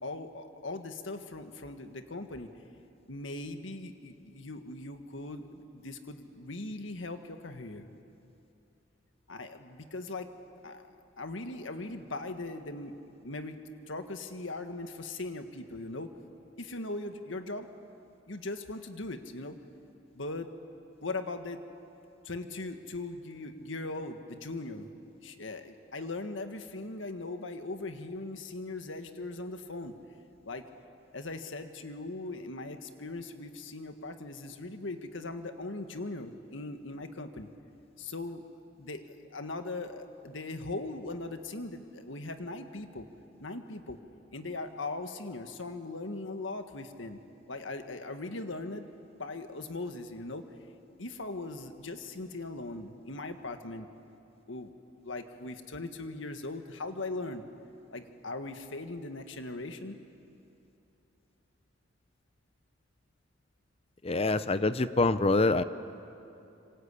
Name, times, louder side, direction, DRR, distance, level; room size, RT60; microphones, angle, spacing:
voice 1, 0.0-2.5 3.1-7.9 9.3-10.3 10.6-12.9 13.2-13.6 13.9-16.1 16.6-17.7 18.3-19.5 20.1-20.5 21.0-21.6 22.2-24.9 25.2-29.9 30.4-30.7 31.1-37.5 38.0-38.4 38.8-43.1 43.4-44.0 44.3-47.2 47.5-50.4 51.0-53.9 54.5-54.7 55.0-57.4 57.9-60.0, left 2 dB, 80° left, 7 dB, 1.7 m, -39 dB
voice 2, 64.0-65.6, left 3 dB, 30° left, 13 dB, 0.7 m, -25 dB
26.5 x 25.5 x 8.4 m, 2.8 s
head